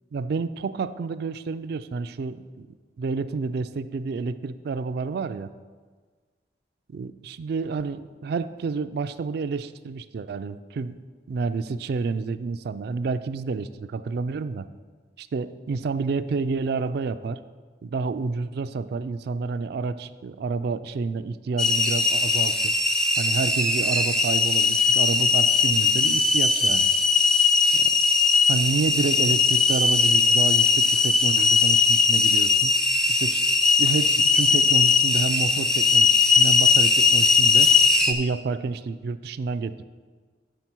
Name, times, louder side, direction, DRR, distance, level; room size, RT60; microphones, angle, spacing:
voice 1, 0.1-5.5 6.9-11.0 11.3-14.7 15.2-17.4 17.8-22.8 23.2-26.9 27.8-28.0 28.5-32.7 33.1-33.4 33.8-37.7 38.0-39.8, right 4 dB, 60° right, 11 dB, 0.3 m, -29 dB
sound 1, 21.6-38.1, left 4 dB, 5° left, 0.4 m, -20 dB
7.1 x 5.7 x 6.0 m, 1.5 s
head